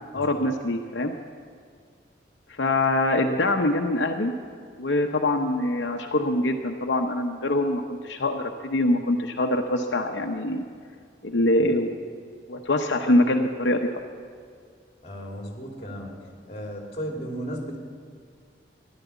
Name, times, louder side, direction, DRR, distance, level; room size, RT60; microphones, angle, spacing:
voice 1, 0.1-1.1 2.5-4.3 4.8-10.6 11.2-11.9 12.5-14.0, left 1 dB, 75° left, 3 dB, 0.8 m, -24 dB
voice 2, 15.0-17.8, equal, 35° left, 1 dB, 2.6 m, -35 dB
14.5 x 11.5 x 8.2 m, 2.2 s
head